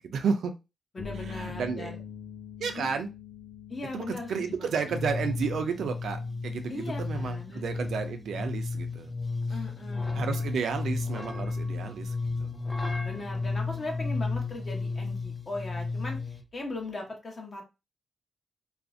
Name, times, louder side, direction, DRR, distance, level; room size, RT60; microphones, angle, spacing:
voice 1, 0.1-0.5 1.1-2.0 2.6-3.1 3.9-9.1 9.5-9.6 10.1-12.5, right 6 dB, 80° right, 7 dB, 0.4 m, -32 dB
voice 2, 0.9-2.0 2.7-2.9 3.7-4.7 6.7-7.6 9.5-10.3 13.0-17.6, left 2 dB, 40° left, 2 dB, 0.8 m, -38 dB
sound 1, 1.0-16.9, left 7 dB, 75° left, 0.6 m, -48 dB
sound 2, 4.9-16.4, left 3 dB, 20° left, 0.4 m, -33 dB
2.4 x 2.0 x 2.5 m, 0.26 s
cardioid pair, 105°, 0 cm